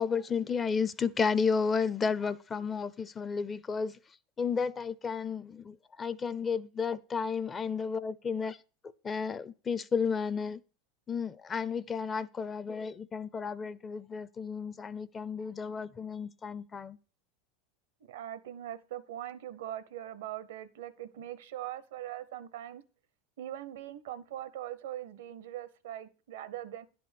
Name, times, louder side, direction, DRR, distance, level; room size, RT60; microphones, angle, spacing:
voice 1, 0.0-3.9 4.4-8.6 9.0-10.6 11.1-17.0, left 5 dB, 25° left, 0.5 m, -32 dB
voice 2, 18.0-22.8 23.4-26.9, right 12 dB, 80° right, 0.7 m, -41 dB
10.5 x 4.3 x 6.2 m
supercardioid pair, 115°, 0 cm